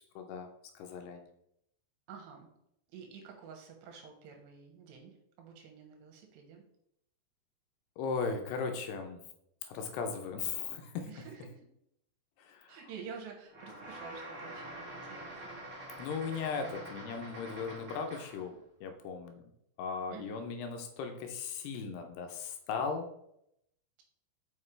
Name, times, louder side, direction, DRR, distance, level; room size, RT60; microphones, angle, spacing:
voice 1, 0.2-0.5 0.8-1.2 8.0-9.2 9.7-11.1 12.4-12.8 16.0-18.6 18.8-19.5 19.8-23.1, left 5 dB, 80° left, 5 dB, 2.7 m, -37 dB
voice 2, 2.1-2.5 2.9-6.6 11.1-11.6 12.7-15.7 16.3-16.9 20.1-20.4, right 6 dB, 80° right, 2 dB, 3.3 m, -49 dB
sound 1, 13.5-18.5, right 1 dB, 55° right, 0.9 m, -46 dB
7.3 x 5.2 x 3.3 m, 0.76 s
omnidirectional pair, 4.9 m